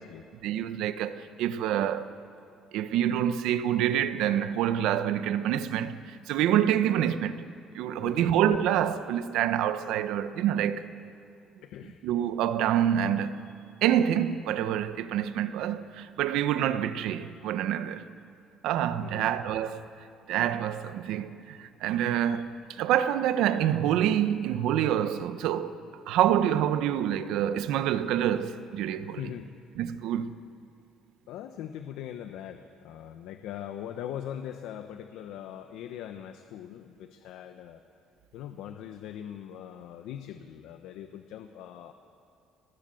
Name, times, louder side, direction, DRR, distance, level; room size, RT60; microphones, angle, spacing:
voice 1, 0.4-2.1 2.7-7.4 7.7-10.9 12.0-13.4 13.8-18.0 18.6-19.8 20.3-25.8 26.1-29.2 29.8-30.3, right 10 dB, 80° right, 1.0 m, -27 dB
voice 2, 8.0-8.4 11.6-12.0 19.0-19.3 29.1-29.5 31.3-37.8 38.3-41.9, left 10 dB, 80° left, 1.0 m, -41 dB
24.0 x 20.0 x 7.8 m
cardioid pair, 145°, 0 cm